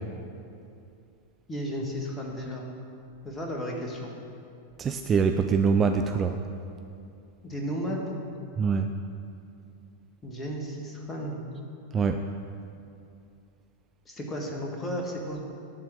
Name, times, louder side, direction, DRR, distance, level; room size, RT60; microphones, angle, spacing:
voice 1, 1.5-2.6 3.2-4.1 7.4-8.2 10.2-11.4 14.1-15.4, equal, 15° left, 0 dB, 1.5 m, -33 dB
voice 2, 4.8-6.3 8.6-8.9 11.9-12.2, right 5 dB, 25° right, 6 dB, 0.3 m, -24 dB
11.5 x 3.9 x 7.7 m, 2.5 s
figure-of-eight pair, 90°, 0 cm